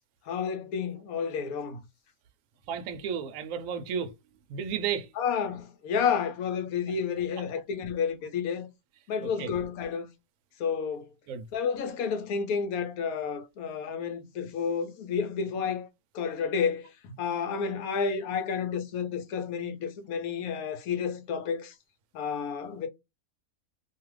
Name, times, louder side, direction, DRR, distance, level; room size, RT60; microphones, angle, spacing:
voice 1, 0.3-1.8 5.2-8.7 9.1-10.1 10.6-11.1 11.5-15.9 16.1-21.7 22.1-22.9, left 6 dB, 80° left, 1.1 m, -30 dB
voice 2, 2.7-4.1 4.5-5.1 9.4-9.5 11.3-11.4, right 7 dB, 70° right, 0.9 m, -32 dB
2.6 x 2.3 x 3.1 m
omnidirectional pair, 1.5 m